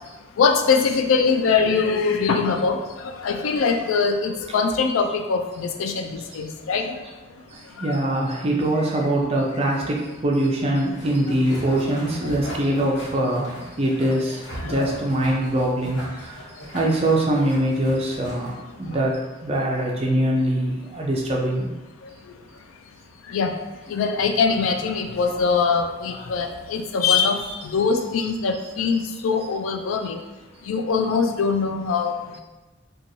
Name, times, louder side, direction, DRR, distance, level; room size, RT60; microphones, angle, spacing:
voice 1, 0.4-7.0 7.7-8.0 9.0-9.1 10.8-10.9 11.7-11.8 12.2-12.6 14.5-15.0 16.3-16.7 22.0-22.3 23.2-23.6 23.9-30.2 30.6-32.4, left 5 dB, 85° left, 6 dB, 0.3 m, -23 dB
voice 2, 7.8-13.5 13.8-16.4 16.7-18.5 18.8-19.1 19.4-21.7 27.4-27.6 27.9-28.0, right 1 dB, 30° right, -1 dB, 0.4 m, -23 dB
sound 1, 10.9-19.1, right 1 dB, 60° left, 1.1 m, -40 dB
2.9 x 2.3 x 2.6 m, 1.1 s
head